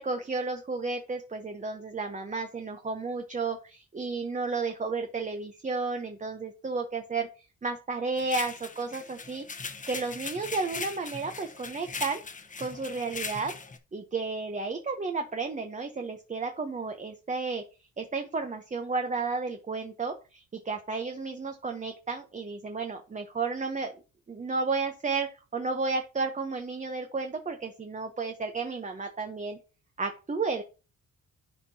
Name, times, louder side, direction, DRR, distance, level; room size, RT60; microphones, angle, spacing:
voice 1, 0.0-7.3 7.6-12.2 12.6-13.5 13.9-17.6 18.0-23.9 24.3-29.6 30.0-30.6, right 4 dB, 25° right, 5 dB, 0.9 m, -32 dB
sound 1, 8.2-13.8, left 4 dB, 25° left, 1.1 m, -39 dB
11.5 x 4.5 x 2.8 m, 0.32 s
cardioid pair, 90°, 30 cm